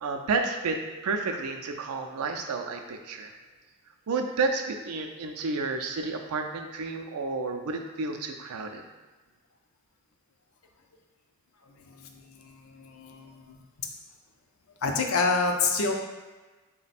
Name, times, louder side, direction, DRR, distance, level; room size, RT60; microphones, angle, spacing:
voice 1, 0.0-3.3 4.1-8.8, right 4 dB, 85° right, 4 dB, 0.4 m, -31 dB
voice 2, 12.4-13.6 14.8-15.9, left 3 dB, 70° left, 3 dB, 0.5 m, -27 dB
4.1 x 2.2 x 4.1 m, 1.2 s
head